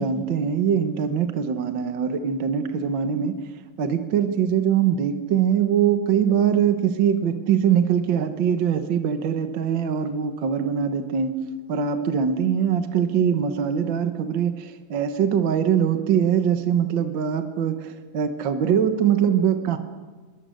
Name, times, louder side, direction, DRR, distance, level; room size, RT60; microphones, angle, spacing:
voice 1, 0.0-3.3 3.8-11.3 11.7-19.8, right 8 dB, 70° right, 7 dB, 1.1 m, -22 dB
25.0 x 23.0 x 6.5 m, 1.4 s
omnidirectional pair, 3.9 m